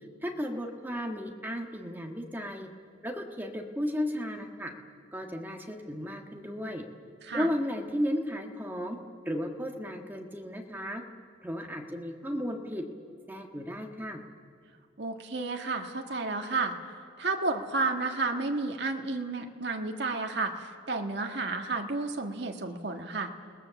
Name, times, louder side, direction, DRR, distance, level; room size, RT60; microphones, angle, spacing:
voice 1, 0.2-2.7 3.0-4.7 5.1-6.8 7.3-9.0 9.2-11.0 11.4-12.8 13.3-14.2, equal, 10° right, 2 dB, 1.6 m, -34 dB
voice 2, 15.0-16.7 17.2-23.3, right 3 dB, 55° right, 3 dB, 1.6 m, -31 dB
29.5 x 19.0 x 7.1 m, 2.2 s
head